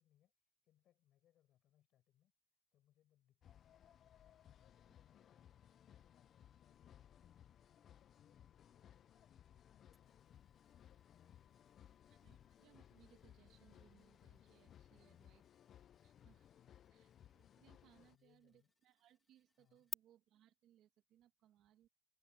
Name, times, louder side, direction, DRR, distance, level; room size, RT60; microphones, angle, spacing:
voice 1, 0.0-2.3 2.7-10.5 10.8-12.4 14.7-15.4 16.4-17.0 17.9-18.7 19.6-19.9, left 12 dB, 80° left, 6.2 m, -77 dB
sound 1, 3.4-18.2, left 10 dB, 65° left, 0.5 m, -64 dB
sound 2, 9.9-19.9, left 3 dB, 25° left, 2.7 m, -59 dB
voice 2, 12.1-15.4 16.0-16.6 16.9-21.9, right 12 dB, 85° right, 1.9 m, -71 dB
cardioid pair, 90°, 0 cm